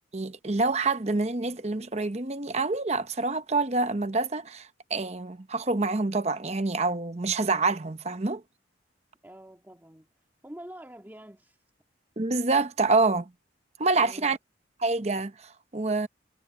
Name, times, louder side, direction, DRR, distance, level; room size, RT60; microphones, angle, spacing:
voice 1, 0.1-8.4 12.2-13.3 13.8-14.4 14.8-16.1, right 3 dB, 35° right, 0.8 m, -27 dB
voice 2, 9.2-10.1 10.4-11.6 13.9-14.4, equal, 10° right, 1.9 m, -46 dB
head